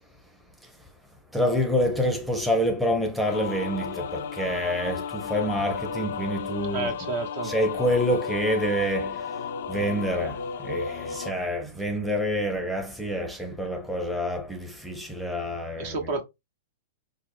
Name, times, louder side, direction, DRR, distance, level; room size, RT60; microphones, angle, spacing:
voice 1, 1.3-6.9 7.4-9.4 9.7-16.0, equal, ahead, 0.7 m, -27 dB
sound 1, 3.3-11.3, left 6 dB, 60° left, 0.4 m, -33 dB
voice 2, 6.7-7.5 15.8-16.2, right 3 dB, 55° right, 1.1 m, -30 dB
4.6 x 2.0 x 3.3 m
figure-of-eight pair, 105°, 0 cm